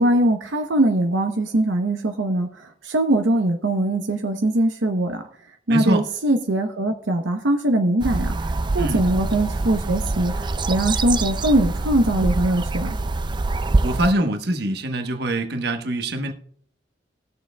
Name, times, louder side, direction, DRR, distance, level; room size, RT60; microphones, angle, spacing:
voice 1, 0.0-5.2 5.7-13.0, right 1 dB, 80° right, 0.8 m, -21 dB
voice 2, 5.7-6.0 8.8-9.0 13.8-16.3, right 1 dB, 60° right, 1.1 m, -24 dB
sound 1, 8.0-14.1, right 3 dB, 25° right, 0.4 m, -25 dB
19.5 x 6.8 x 2.3 m
head